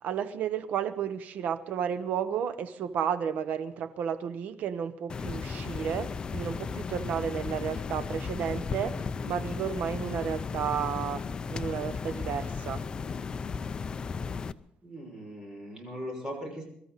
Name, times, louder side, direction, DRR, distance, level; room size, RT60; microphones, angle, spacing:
voice 1, 0.0-11.2 11.5-12.8, right 8 dB, 65° right, 1.0 m, -32 dB
sound 1, 5.1-14.5, left 5 dB, 30° left, 0.5 m, -35 dB
voice 2, 14.8-16.6, equal, 20° right, 6.1 m, -39 dB
24.5 x 13.0 x 4.1 m
cardioid pair, 140°, 3 cm